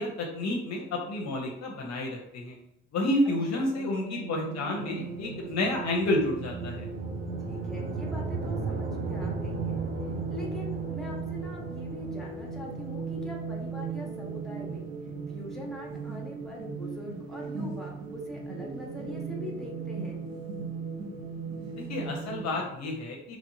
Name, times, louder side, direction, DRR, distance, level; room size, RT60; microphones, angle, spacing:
voice 1, 0.0-2.6 2.9-6.9 21.7-23.4, left 1 dB, 50° left, 0 dB, 0.7 m, -30 dB
sound 1, 3.3-22.4, right 5 dB, 75° right, 1.0 m, -38 dB
sound 2, 4.7-22.7, right 1 dB, 50° right, 1.2 m, -46 dB
sound 3, 5.1-15.3, right 3 dB, 25° right, 0.5 m, -37 dB
voice 2, 7.5-9.8 10.3-14.9 15.3-20.2, left 1 dB, ahead, -2 dB, 1.0 m, -42 dB
3.0 x 2.6 x 2.6 m, 0.78 s
hypercardioid pair, 55°, 36 cm